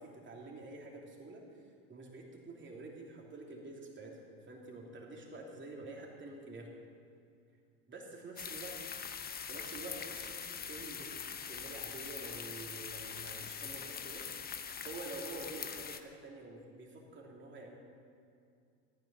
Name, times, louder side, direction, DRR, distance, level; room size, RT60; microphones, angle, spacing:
voice 1, 0.0-1.6 1.9-4.2 4.5-6.7 7.9-8.7 9.5-14.2 14.8-17.8, right 2 dB, 25° right, -1 dB, 3.1 m, -48 dB
sound 1, 8.4-16.0, left 7 dB, 20° left, 0.8 m, -43 dB
14.5 x 9.2 x 7.1 m, 2.4 s
hypercardioid pair, 90°, 48 cm